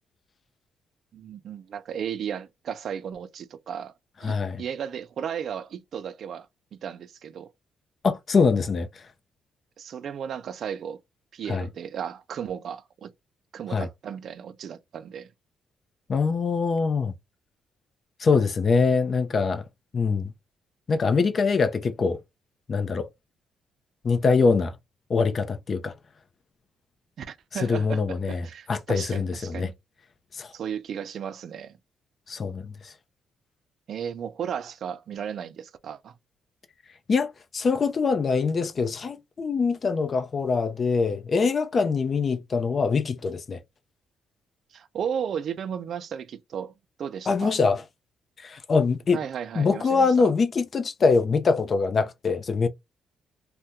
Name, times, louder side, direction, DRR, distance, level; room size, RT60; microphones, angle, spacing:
voice 1, 1.1-3.9 4.2-6.5 6.7-7.5 9.8-11.0 11.3-13.1 13.5-15.3 27.2-29.7 30.5-31.8 33.9-36.1 44.7-46.7 47.0-47.6 49.1-50.3, right 8 dB, 60° right, 0.4 m, -34 dB
voice 2, 4.2-4.6 8.0-8.9 11.5-11.7 13.7-13.9 16.1-17.1 18.2-19.6 19.9-20.3 20.9-22.2 22.7-23.1 24.0-24.7 25.1-25.9 27.6-29.7 30.4-30.5 32.3-32.9 37.1-43.6 47.3-47.8 48.4-49.2 49.5-52.7, left 4 dB, 45° left, 0.6 m, -23 dB
2.7 x 2.1 x 3.5 m
cardioid pair, 90°, 0 cm